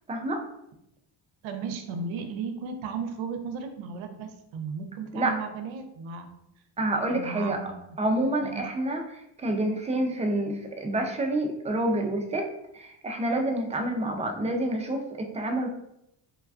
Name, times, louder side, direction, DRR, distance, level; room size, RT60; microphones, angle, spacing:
voice 1, 0.1-0.5 5.1-5.4 6.8-7.6 8.0-12.5 12.7-15.7, right 1 dB, 15° right, 3 dB, 0.3 m, -28 dB
voice 2, 1.4-6.3 7.1-8.0 8.4-8.7, right 5 dB, 70° right, 6 dB, 0.6 m, -35 dB
3.3 x 2.2 x 2.4 m, 0.80 s
cardioid pair, 85°, 49 cm